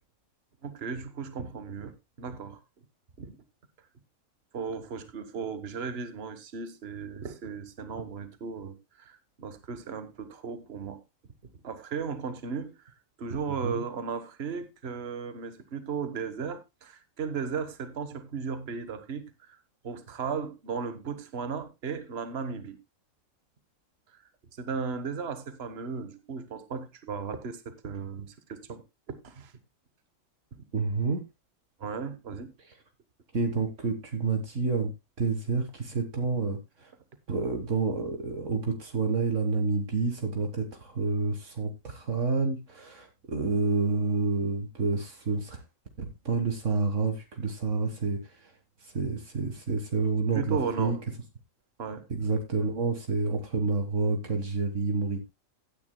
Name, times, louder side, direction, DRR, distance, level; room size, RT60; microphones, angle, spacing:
voice 1, 0.6-2.6 3.2-3.4 4.5-11.0 11.6-19.6 19.8-22.8 24.1-24.2 24.6-28.8 29.1-29.5 31.8-32.5 50.3-51.0 51.8-52.1, right 5 dB, 50° right, 1.5 m, -36 dB
voice 2, 30.7-31.2 33.3-34.9 35.2-36.6 37.3-40.7 41.0-41.7 42.0-45.5 46.3-47.2 47.4-48.2 49.0-51.0 52.1-55.3, right 4 dB, 70° right, 1.9 m, -28 dB
16.0 x 9.6 x 2.2 m
omnidirectional pair, 1.3 m